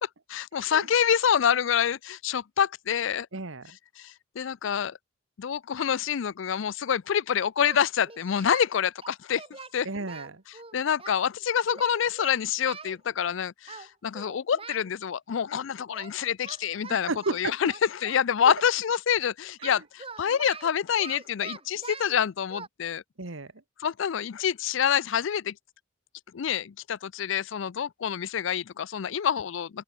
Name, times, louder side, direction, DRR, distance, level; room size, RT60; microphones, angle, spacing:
voice 1, 0.0-3.3 4.0-5.0 5.4-9.4 9.7-9.9 10.7-23.0 23.8-25.5 26.3-29.8, left 8 dB, 65° left, 0.4 m, -27 dB
voice 2, 0.5-0.9 3.3-3.8 9.8-10.4 16.9-17.6 18.4-18.5 19.6-19.8 23.2-23.5, right 3 dB, 75° right, 1.4 m, -33 dB
Singing, 7.6-8.7 9.0-11.2 11.7-13.0 13.7-13.9 14.1-14.9 15.9-16.1 16.4-18.6 19.6-22.2 22.5-22.7, right 4 dB, 30° right, 7.6 m, -43 dB
open air
head